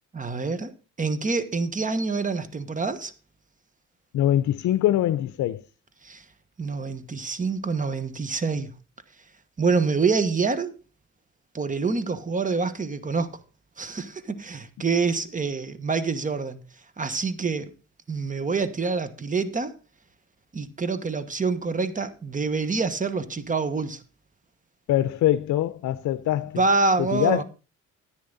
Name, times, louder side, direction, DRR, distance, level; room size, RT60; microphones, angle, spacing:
voice 1, 0.1-0.7 1.0-3.1 6.0-6.2 6.6-8.7 9.6-10.7 11.5-13.4 13.8-16.6 17.0-17.7 18.1-19.7 20.5-24.0 26.6-27.4, right 4 dB, 25° right, 1.3 m, -26 dB
voice 2, 4.1-5.6 24.9-26.6 27.0-27.4, left 13 dB, 70° left, 0.6 m, -23 dB
10.5 x 9.5 x 4.0 m
cardioid pair, 90°, 30 cm